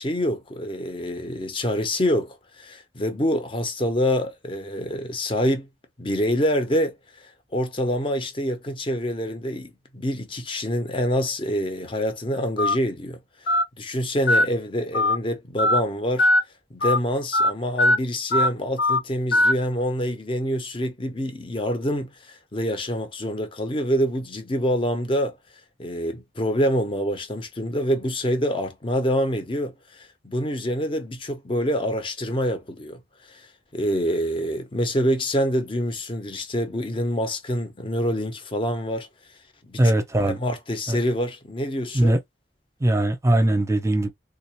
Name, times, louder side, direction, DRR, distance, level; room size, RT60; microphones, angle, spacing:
voice 1, 0.0-5.7 6.0-13.5 13.8-16.3 16.7-25.4 25.8-33.0 33.3-33.5 33.7-39.1 39.6-39.8 40.2-42.2, equal, 30° left, 0.8 m, -26 dB
Telephone, 12.6-12.7 13.5-13.6 14.3-14.4 14.9-15.2 15.6-15.8 16.2-16.4 16.8-17.0 17.3-17.5 17.8-18.0 18.3-18.5 18.8-19.0 19.3-19.5, left 1 dB, 65° left, 0.6 m, -19 dB
voice 2, 39.8-40.4 40.9-41.0 41.9-42.2 42.8-44.1, right 1 dB, 15° right, 0.7 m, -20 dB
3.7 x 2.5 x 2.9 m
head